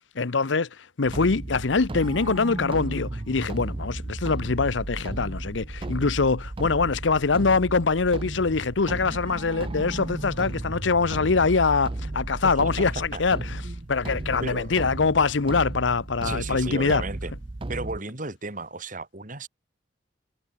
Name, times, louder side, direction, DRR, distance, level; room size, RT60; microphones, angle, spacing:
voice 1, 0.1-13.6 13.9-17.0, left 4 dB, 75° left, 0.8 m, -24 dB
sound 1, 1.0-18.0, right 2 dB, 30° right, 0.6 m, -34 dB
voice 2, 12.4-12.9 13.1-13.2 13.6-13.9 14.4-14.8 16.2-17.3 17.7-19.5, right 2 dB, 45° right, 2.8 m, -34 dB
head